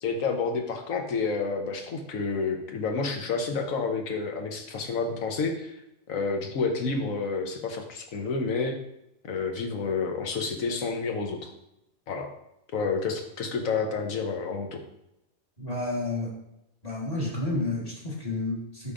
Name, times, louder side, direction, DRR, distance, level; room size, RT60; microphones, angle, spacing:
voice 1, 0.0-5.8 6.1-8.8 9.2-11.5 12.1-12.3 12.7-14.8, left 4 dB, 75° left, 4 dB, 1.3 m, -29 dB
voice 2, 15.6-16.3 16.8-18.9, left 2 dB, 30° left, -4 dB, 1.6 m, -30 dB
8.3 x 5.3 x 2.5 m, 0.84 s
omnidirectional pair, 1.4 m